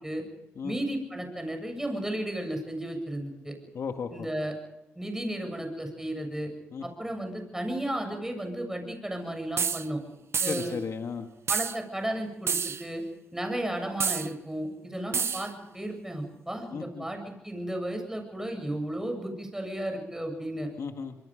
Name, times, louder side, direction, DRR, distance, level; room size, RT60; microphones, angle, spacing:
voice 1, 0.6-3.5 4.1-4.5 5.0-6.5 6.8-10.0 10.4-10.7 11.5-13.0 13.3-20.7, right 1 dB, 10° right, 4 dB, 7.6 m, -34 dB
voice 2, 3.7-4.3 6.7-6.8 10.5-11.3 16.7-17.1 20.8-21.2, left 6 dB, 70° left, 5 dB, 1.8 m, -35 dB
sound 1, 9.6-9.9 10.3-10.7 11.5-11.8 12.5-12.8 14.0-14.3 15.1-15.5, right 6 dB, 60° right, 0.8 m, -28 dB
26.0 x 23.0 x 5.2 m, 0.91 s
cardioid pair, 65°, 5 cm